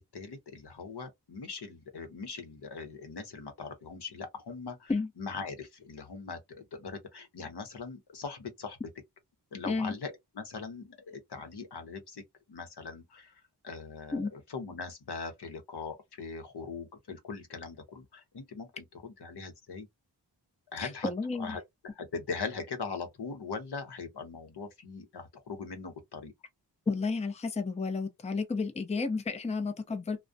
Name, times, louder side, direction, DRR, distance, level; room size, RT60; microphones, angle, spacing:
voice 1, 0.0-4.9 5.2-8.8 9.5-12.2 12.5-13.3 13.6-19.9 20.7-21.1 21.4-26.3, left 4 dB, 70° left, 0.8 m, -41 dB
voice 2, 9.6-9.9 14.1-14.3 20.8-21.6 26.9-30.2, left 4 dB, 15° left, 0.5 m, -32 dB
2.3 x 2.1 x 2.6 m
wide cardioid pair, 55°, 42 cm